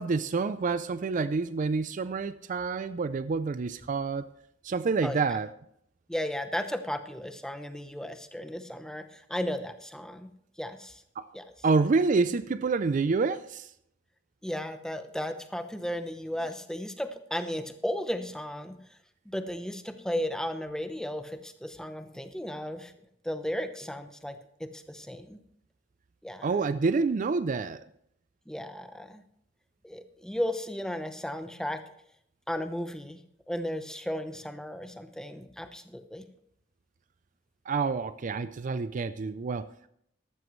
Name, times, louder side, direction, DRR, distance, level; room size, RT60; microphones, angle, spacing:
voice 1, 0.0-4.3 4.6-5.5 11.2-11.3 11.6-13.7 26.4-27.8 37.7-39.9, right 4 dB, 45° right, 14 dB, 0.4 m, -28 dB
voice 2, 6.1-10.3 10.6-11.0 11.3-11.4 14.4-18.8 19.3-22.9 23.2-25.4 26.2-26.6 28.5-29.2 29.8-31.8 32.5-33.2 33.5-36.2, equal, 5° left, 8 dB, 0.8 m, -35 dB
14.0 x 12.5 x 3.1 m, 0.72 s
head